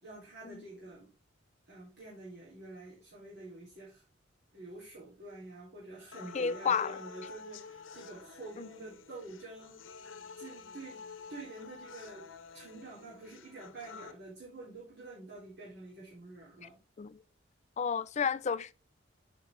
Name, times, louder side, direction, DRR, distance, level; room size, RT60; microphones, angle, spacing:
voice 1, 0.0-1.1 1.7-4.0 4.5-10.0 10.4-11.0 11.3-12.3 12.5-16.8, right 2 dB, 60° right, 3.7 m, -48 dB
sound 1, 6.1-14.1, left 5 dB, 90° left, 0.9 m, -49 dB
voice 2, 6.3-7.0 8.6-8.7 17.0-17.2 17.8-18.7, left 6 dB, 35° left, 0.4 m, -31 dB
9.4 x 5.3 x 3.6 m
head